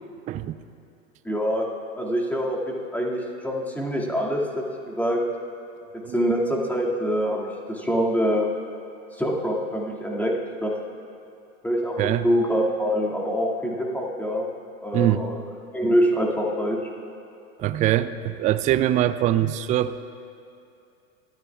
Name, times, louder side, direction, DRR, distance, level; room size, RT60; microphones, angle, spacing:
voice 1, 1.2-1.7 2.0-5.2 5.9-8.5 9.1-10.7 11.6-14.5 14.8-15.4 15.7-16.8, equal, 5° left, -2 dB, 2.2 m, -25 dB
voice 2, 14.9-15.3 17.6-20.0, right 12 dB, 20° right, 12 dB, 0.3 m, -23 dB
24.0 x 13.5 x 2.4 m, 2.6 s
hypercardioid pair, 95°, 40 cm